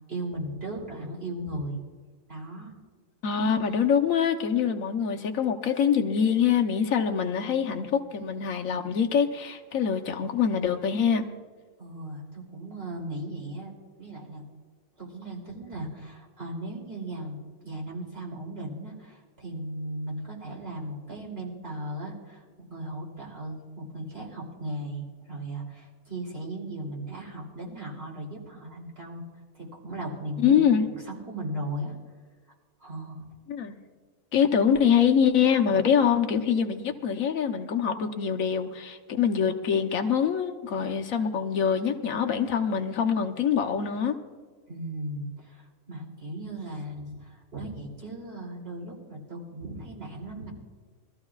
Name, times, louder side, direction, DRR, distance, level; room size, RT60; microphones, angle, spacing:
voice 1, 0.1-1.8 2.3-2.8 11.8-13.7 14.0-14.4 15.0-29.2 29.5-31.9 32.8-33.2 44.7-50.5, right 1 dB, 45° right, -3 dB, 3.4 m, -37 dB
voice 2, 3.2-11.3 30.4-30.9 33.5-33.8 34.3-44.2, left 7 dB, 85° left, 4 dB, 1.3 m, -24 dB
22.5 x 13.5 x 2.4 m, 1.4 s
omnidirectional pair, 1.4 m